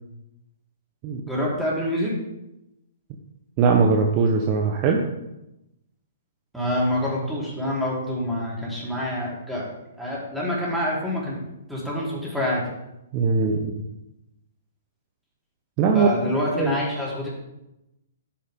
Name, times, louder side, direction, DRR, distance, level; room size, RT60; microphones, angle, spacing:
voice 1, 1.3-2.1 6.5-9.7 10.0-11.4 11.7-12.6 15.9-17.3, left 1 dB, ahead, -6 dB, 4.1 m, -26 dB
voice 2, 3.6-5.0 13.1-13.8 15.8-16.1 16.6-16.7, right 5 dB, 35° right, 2 dB, 1.2 m, -20 dB
9.9 x 8.8 x 3.9 m, 0.91 s
hypercardioid pair, 125°, 0 cm